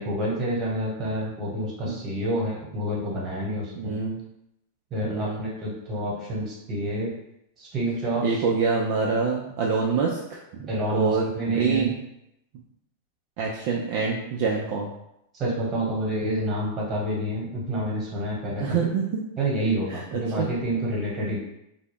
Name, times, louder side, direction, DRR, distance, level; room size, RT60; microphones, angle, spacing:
voice 1, 0.0-4.0 4.9-7.1 7.6-8.4 10.7-11.9 15.3-18.9 19.4-21.4, right 1 dB, 30° right, -4 dB, 1.2 m, -28 dB
voice 2, 3.8-4.2 5.0-5.4 8.2-11.9 13.4-14.9 18.6-19.2 19.9-20.0 20.4-20.5, right 5 dB, 55° right, -1 dB, 0.4 m, -26 dB
2.2 x 2.0 x 3.4 m, 0.82 s
hypercardioid pair, 105°, 0 cm